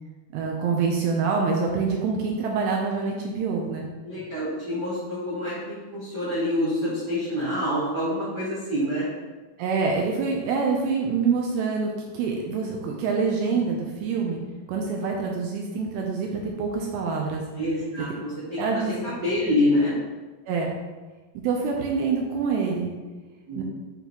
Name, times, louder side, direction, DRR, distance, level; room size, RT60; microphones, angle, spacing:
voice 1, 0.3-3.9 9.6-14.4 14.7-17.4 18.6-19.0 20.5-20.7 21.4-22.9 23.6-23.7, right 5 dB, 80° right, 0 dB, 2.6 m, -26 dB
voice 2, 4.0-9.0 17.6-19.9 23.5-23.6, left 1 dB, 65° right, -9 dB, 1.0 m, -27 dB
9.2 x 5.3 x 3.1 m, 1.2 s
omnidirectional pair, 5.5 m